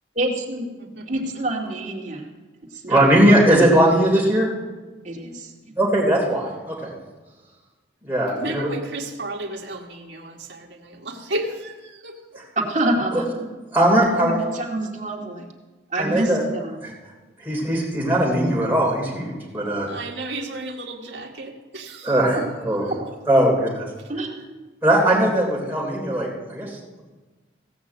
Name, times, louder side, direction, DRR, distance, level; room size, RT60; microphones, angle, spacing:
voice 1, 0.2-0.7 1.1-2.3 2.7-3.6 5.0-5.3 12.6-13.6 14.1-15.5 15.9-16.8 22.9-23.0 24.1-24.6, right 1 dB, 40° right, -2 dB, 2.3 m, -27 dB
voice 2, 2.9-4.5 5.8-6.9 8.0-8.7 13.1-13.2 13.7-14.4 16.0-16.4 16.8-16.9 17.4-19.9 22.0-22.4 22.6-22.8 23.3-23.5 24.8-26.8, right 1 dB, 10° right, -4 dB, 3.4 m, -19 dB
voice 3, 8.4-12.4 19.9-22.1, right 1 dB, 70° right, 1 dB, 1.7 m, -33 dB
16.5 x 6.2 x 8.0 m, 1.3 s
head